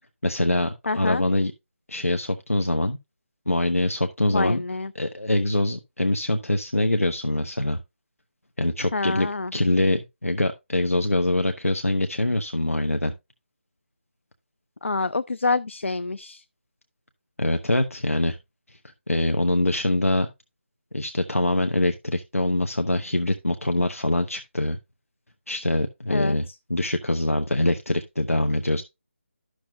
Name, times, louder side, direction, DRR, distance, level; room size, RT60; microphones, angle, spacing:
voice 1, 0.2-1.5 1.9-3.0 3.5-4.6 4.9-7.8 8.6-13.1 17.4-18.4 19.1-20.3 20.9-24.8 25.5-28.8, left 1 dB, 85° left, 0.9 m, -24 dB
voice 2, 0.9-1.2 4.3-4.9 8.9-9.5 14.8-16.4 26.1-26.4, left 3 dB, 65° left, 0.4 m, -26 dB
12.0 x 6.3 x 2.4 m
figure-of-eight pair, 160°, 7 cm